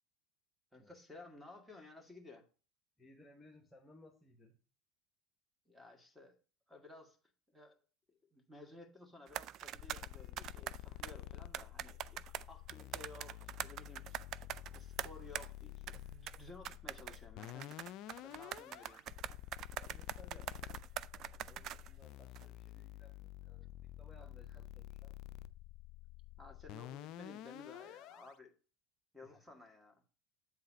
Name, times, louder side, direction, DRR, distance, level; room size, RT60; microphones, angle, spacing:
voice 1, 0.7-2.5 5.7-6.3 6.7-7.2 7.5-7.8 8.3-14.1 14.7-17.8 18.2-19.0 24.2-24.3 26.4-28.5 29.1-30.0, left 2 dB, ahead, 1.9 m, -56 dB
voice 2, 3.0-4.6 19.8-20.8 21.1-25.2 29.2-29.4, left 1 dB, 15° left, 1.0 m, -62 dB
sound 1, 9.3-11.1 11.5-15.5 15.9-16.0 16.3-16.4 16.6-21.9 22.4-22.5, right 12 dB, 50° right, 0.3 m, -44 dB
sound 2, 9.8-28.3, left 14 dB, 55° left, 0.3 m, -50 dB
8.5 x 3.9 x 5.1 m
hypercardioid pair, 80°, 0 cm